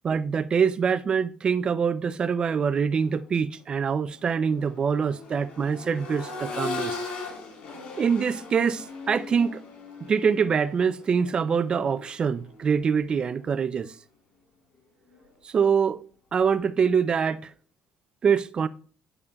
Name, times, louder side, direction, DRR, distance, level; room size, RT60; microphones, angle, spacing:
voice 1, 0.0-7.0 8.0-9.6 10.1-13.9 15.4-16.0 16.3-17.5 18.2-18.7, right 6 dB, 35° right, 0.5 m, -24 dB
Accelerating revving vroom, 2.9-3.1 3.5-13.4 15.1-15.2, left 4 dB, 55° left, 4.1 m, -39 dB
11.0 x 6.6 x 2.3 m
cardioid pair, 110°, 3 cm